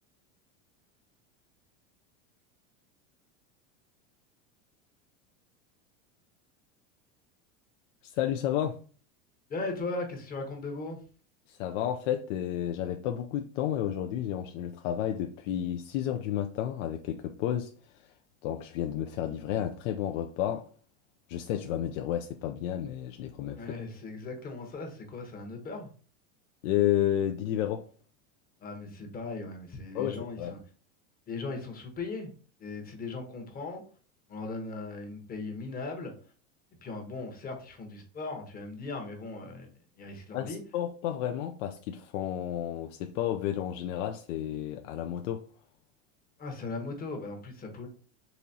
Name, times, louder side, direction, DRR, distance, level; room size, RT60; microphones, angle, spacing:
voice 1, 8.0-8.8 11.5-18.1 18.4-20.7 21.3-23.6 26.6-27.9 29.9-30.5 40.3-45.5, left 11 dB, 70° left, 0.5 m, -31 dB
voice 2, 9.5-11.0 23.6-25.9 28.6-30.6 31.3-32.3 32.6-33.8 34.3-36.1 36.8-39.7 39.9-40.6 46.4-47.9, left 3 dB, 25° left, 0.9 m, -38 dB
4.0 x 2.9 x 2.7 m
supercardioid pair, 130°, 39 cm